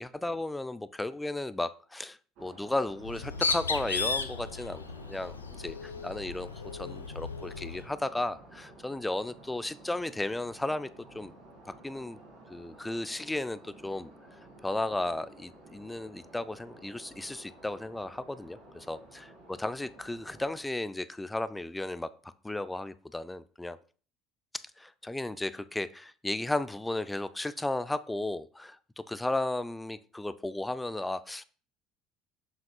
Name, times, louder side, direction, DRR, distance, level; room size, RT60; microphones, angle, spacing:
voice 1, 0.0-4.8 5.1-10.9 11.1-11.3 11.7-12.2 12.5-14.1 14.6-22.1 22.4-23.8 24.8-31.4, left 2 dB, 10° left, 14 dB, 0.4 m, -34 dB
sound 1, 2.4-20.6, right 1 dB, 60° right, 1.9 m, -53 dB
Bird, 3.0-7.9, left 4 dB, 90° left, 0.4 m, -35 dB
7.2 x 5.9 x 2.3 m, 0.41 s
hypercardioid pair, 60°, 0 cm